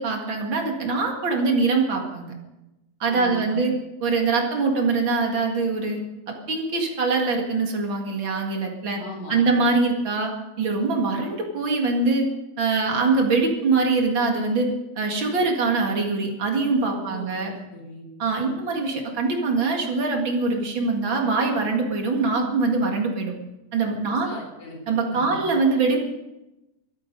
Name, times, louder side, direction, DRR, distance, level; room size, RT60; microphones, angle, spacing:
voice 1, 0.0-2.3 3.0-3.7 4.0-6.0 6.3-9.0 9.3-10.3 10.6-12.3 12.6-17.5 18.2-23.3 23.7-24.3 24.9-26.0, right 3 dB, 40° right, 1 dB, 1.8 m, -23 dB
voice 2, 3.1-3.6 8.9-9.5 16.9-18.1 24.0-24.8 25.1-25.4, equal, 25° left, -1 dB, 4.0 m, -39 dB
25.0 x 8.7 x 5.3 m, 0.98 s
omnidirectional pair, 4.7 m